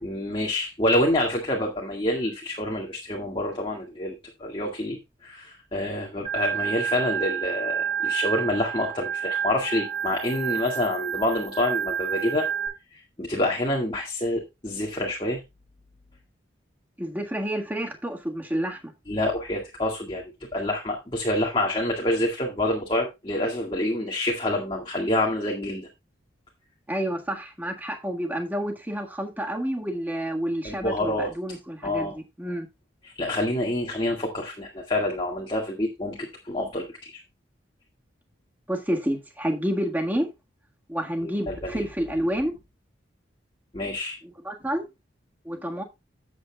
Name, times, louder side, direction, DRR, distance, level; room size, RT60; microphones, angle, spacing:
voice 1, 0.0-12.5 12.9-15.4 19.1-25.9 30.6-31.3 31.8-32.2 33.0-37.2 41.2-41.8 43.7-44.2, left 1 dB, 25° left, 1.9 m, -27 dB
Organ, 6.2-12.7, right 8 dB, 35° right, 6.3 m, -29 dB
voice 2, 17.0-18.9 26.9-32.7 38.7-40.3 40.9-42.5 44.4-44.8 45.4-45.8, equal, 10° right, 1.6 m, -29 dB
13.0 x 8.4 x 2.3 m
head